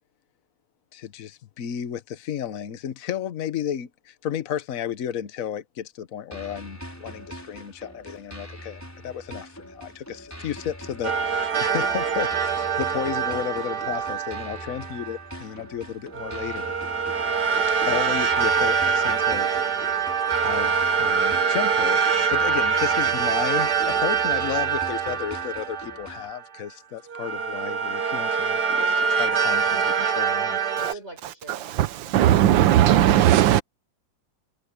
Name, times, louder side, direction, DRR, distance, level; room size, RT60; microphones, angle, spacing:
voice 1, 0.9-16.7 17.9-20.0 20.4-28.6 29.2-30.6, left 9 dB, 50° left, 1.4 m, -33 dB
sound 1, 6.3-26.3, equal, 10° left, 4.9 m, -42 dB
sound 2, 11.0-15.2 16.1-26.6 27.1-30.9, right 6 dB, 60° right, 1.9 m, -24 dB
voice 2, 28.7-29.2 30.8-33.2, right 3 dB, 35° right, 5.3 m, -44 dB
voice 3, 31.7-33.6, right 12 dB, 85° right, 1.5 m, -17 dB
omnidirectional pair, 2.0 m